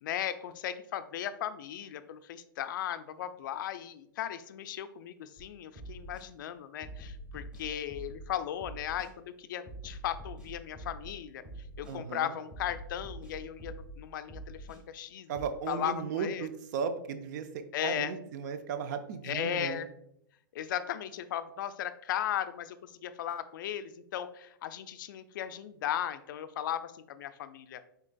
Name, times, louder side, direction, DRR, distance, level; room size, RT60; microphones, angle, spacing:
voice 1, 0.0-11.4 11.8-15.3 15.7-16.5 17.7-18.2 19.2-19.9 20.5-27.8, left 10 dB, 65° left, 12 dB, 0.4 m, -36 dB
sound 1, 5.4-5.5 5.8-6.3 6.8-8.3 8.6-9.1 9.7-11.1 11.4-12.0 12.5-14.0 14.3-14.8 15.4-15.5, right 1 dB, 10° right, 1.1 m, -45 dB
voice 2, 11.9-12.4 15.3-19.9, right 6 dB, 55° right, 9 dB, 0.5 m, -36 dB
4.9 x 3.9 x 2.2 m, 0.75 s
hypercardioid pair, 130°, 11 cm